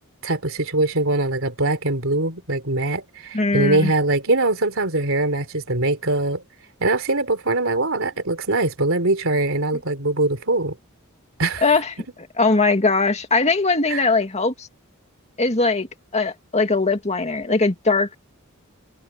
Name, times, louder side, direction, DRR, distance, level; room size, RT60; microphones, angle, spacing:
voice 1, 0.2-6.4 6.8-10.8 11.4-11.7 13.9-14.0, right 2 dB, 65° right, 3.8 m, -22 dB
voice 2, 3.3-3.9 11.6-11.9 12.4-14.7 15.4-15.9 16.1-18.1, left 3 dB, 30° left, 2.3 m, -20 dB
head